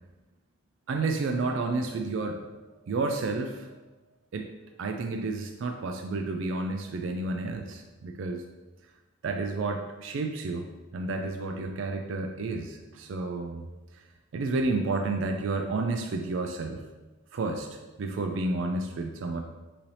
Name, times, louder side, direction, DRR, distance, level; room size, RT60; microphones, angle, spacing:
voice 1, 0.9-2.4 2.8-3.8 4.3-4.5 4.8-8.4 9.2-10.6 10.9-13.7 14.3-16.8 17.3-19.4, right 3 dB, 65° right, 4 dB, 0.3 m, -31 dB
5.6 x 2.7 x 3.2 m, 1.1 s
head